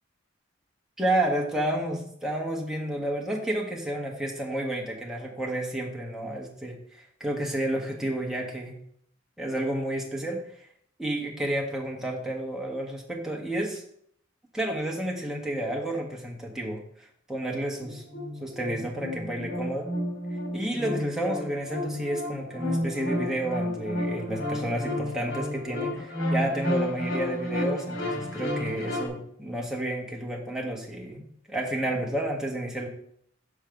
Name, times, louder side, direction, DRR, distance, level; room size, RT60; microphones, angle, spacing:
voice 1, 1.0-8.8 9.4-10.4 11.0-13.8 14.5-18.0 18.4-19.9 20.3-32.9, right 1 dB, 5° right, -1 dB, 1.3 m, -31 dB
sound 1, 17.8-29.1, left 1 dB, 85° left, 2.3 m, -31 dB
5.7 x 5.1 x 5.8 m, 0.68 s
head